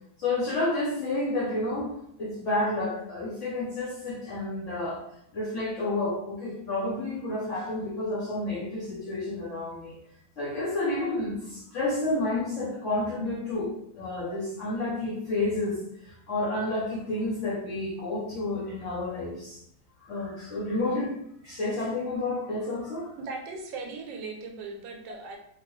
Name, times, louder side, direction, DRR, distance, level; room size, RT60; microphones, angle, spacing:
voice 1, 0.2-5.0 5.3-10.0 10.4-19.6 20.0-21.1 21.4-23.1, left 2 dB, 60° left, -6 dB, 0.8 m, -30 dB
voice 2, 23.2-25.4, right 3 dB, 80° right, 2 dB, 1.3 m, -38 dB
2.9 x 2.2 x 3.0 m, 0.73 s
omnidirectional pair, 2.0 m